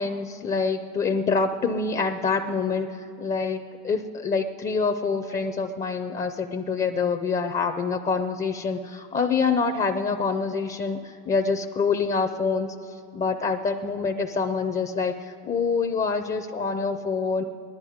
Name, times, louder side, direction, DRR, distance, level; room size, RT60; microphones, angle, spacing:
voice 1, 0.0-17.4, left 5 dB, 15° left, 7 dB, 0.5 m, -26 dB
19.5 x 11.0 x 5.1 m, 2.5 s
supercardioid pair, 100°, 49 cm